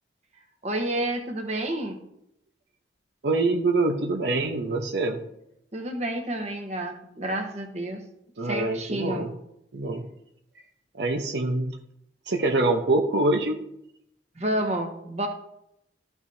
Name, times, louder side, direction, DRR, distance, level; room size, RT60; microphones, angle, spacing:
voice 1, 0.6-2.0 5.7-8.0 8.4-9.3 14.4-15.3, right 1 dB, 40° right, 3 dB, 1.2 m, -29 dB
voice 2, 3.2-5.2 8.4-9.3 9.7-10.1 10.9-11.8 12.3-13.5, right 2 dB, 75° right, 3 dB, 0.8 m, -25 dB
13.5 x 6.0 x 2.7 m, 0.78 s
head